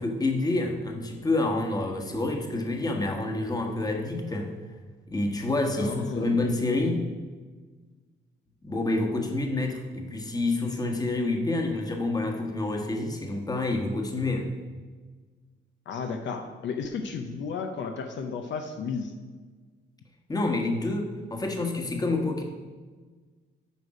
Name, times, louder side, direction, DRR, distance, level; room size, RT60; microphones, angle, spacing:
voice 1, 0.0-4.5 5.1-7.0 8.6-14.5 20.3-22.4, left 2 dB, 20° left, 3 dB, 1.3 m, -28 dB
voice 2, 5.8-6.4 15.9-19.1, left 5 dB, 70° left, 5 dB, 0.7 m, -33 dB
8.4 x 5.2 x 4.9 m, 1.4 s
cardioid pair, 90°, 20 cm